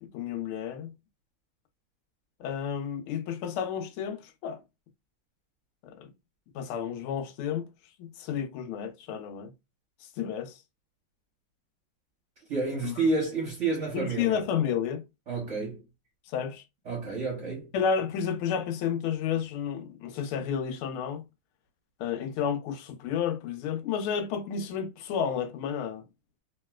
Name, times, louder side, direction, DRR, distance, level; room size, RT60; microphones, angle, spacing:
voice 1, 0.0-0.9 2.4-4.6 5.8-6.1 6.5-7.7 8.0-9.5 10.2-10.6 12.8-12.9 13.9-15.0 16.3-16.6 17.7-21.2 22.0-26.0, left 7 dB, 90° left, 1.5 m, -31 dB
voice 2, 12.5-14.4 15.3-15.8 16.9-17.7, right 3 dB, 50° right, 1.0 m, -30 dB
3.0 x 2.9 x 2.2 m
omnidirectional pair, 2.3 m